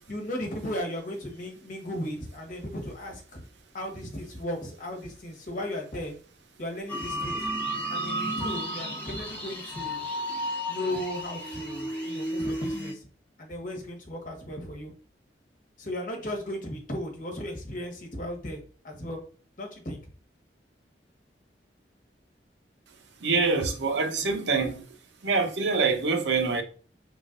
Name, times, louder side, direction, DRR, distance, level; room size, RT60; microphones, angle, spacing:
voice 1, 0.1-3.4 3.7-6.1 6.6-7.4 7.9-10.0 10.7-13.1 13.4-14.9 15.8-19.2 19.6-20.0, left 1 dB, 50° left, 1.4 m, -36 dB
sound 1, 6.9-12.9, equal, 10° left, 1.2 m, -32 dB
voice 2, 23.2-24.8 25.2-26.6, right 4 dB, 85° right, 0.9 m, -25 dB
5.1 x 3.6 x 2.5 m
head